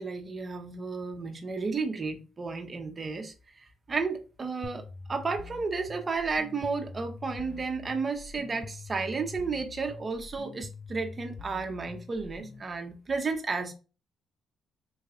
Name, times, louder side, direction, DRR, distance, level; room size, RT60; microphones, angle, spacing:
voice 1, 0.0-13.7, right 4 dB, 35° right, 0.8 m, -33 dB
sound 1, 4.6-12.6, left 4 dB, 35° left, 0.3 m, -45 dB
4.0 x 3.1 x 2.4 m
cardioid pair, 90°, 0 cm